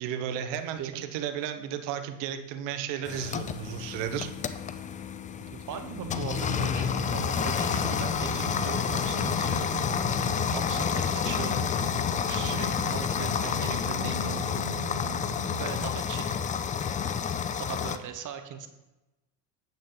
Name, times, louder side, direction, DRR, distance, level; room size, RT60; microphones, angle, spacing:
voice 1, 0.0-4.3, right 9 dB, 65° right, 9 dB, 1.1 m, -33 dB
sound 1, 3.0-18.0, left 7 dB, 20° left, 0.3 m, -29 dB
voice 2, 5.5-9.7 10.5-11.9 12.3-14.8 15.6-16.4 17.6-18.7, right 8 dB, 40° right, 8 dB, 1.1 m, -40 dB
Wind, 5.9-15.9, right 4 dB, 90° right, 1.5 m, -40 dB
9.1 x 7.5 x 3.9 m, 1.0 s
supercardioid pair, 95°, 46 cm